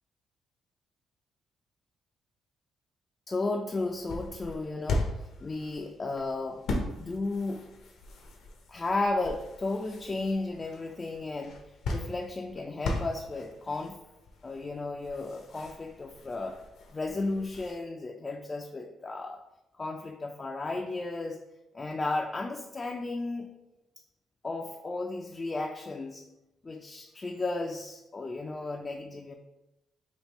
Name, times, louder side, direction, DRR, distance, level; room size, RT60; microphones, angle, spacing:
voice 1, 3.3-6.6 7.0-7.7 8.7-14.0 14.4-16.6 16.9-19.4 19.8-21.4 21.7-23.5 24.4-26.2 26.6-29.3, left 2 dB, 30° left, 2 dB, 0.3 m, -34 dB
sound 1, 3.7-17.7, left 2 dB, 75° left, 0.7 m, -39 dB
3.5 x 2.6 x 4.0 m, 0.95 s
cardioid pair, 90°, 0 cm